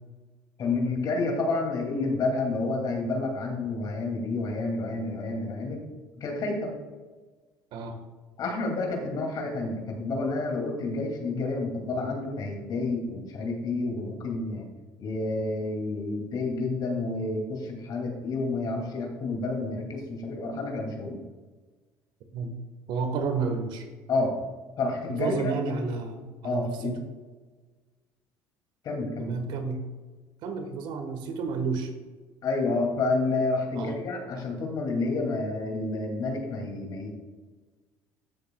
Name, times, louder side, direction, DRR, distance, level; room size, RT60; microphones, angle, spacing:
voice 1, 0.6-5.9 6.2-6.8 8.4-14.7 15.0-21.2 24.1-24.4 24.8-25.5 26.4-27.0 28.8-29.4 32.4-37.1, left 3 dB, 55° left, 1 dB, 2.4 m, -29 dB
voice 2, 22.9-23.9 25.2-27.0 29.2-29.8 30.4-31.9 33.7-33.9, right 4 dB, 70° right, 6 dB, 1.3 m, -31 dB
13.5 x 7.0 x 2.3 m, 1.3 s
supercardioid pair, 95°, 8 cm